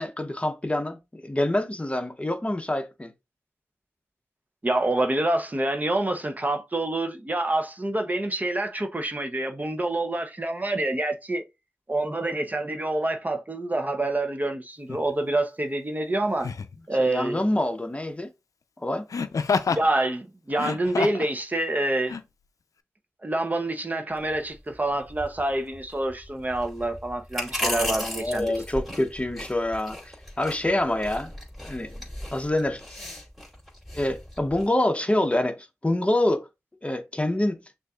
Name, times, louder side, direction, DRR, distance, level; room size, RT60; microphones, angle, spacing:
voice 1, 0.0-3.1 17.0-18.3 18.8-19.1 27.5-31.3 31.6-32.0 32.3-33.0 33.9-36.5 36.8-37.6, left 1 dB, 20° left, 0.8 m, -26 dB
voice 2, 4.6-11.4 11.9-16.5 16.9-17.5 19.7-22.1 23.2-28.5, right 2 dB, 30° right, 0.8 m, -27 dB
Laughter, 14.9-15.1 16.4-16.8 19.1-19.9 20.5-21.3 22.1-22.2, left 5 dB, 65° left, 0.5 m, -27 dB
sound 1, 24.1-34.7, left 1 dB, ahead, 2.7 m, -37 dB
6.3 x 2.5 x 2.4 m
cardioid pair, 45°, 6 cm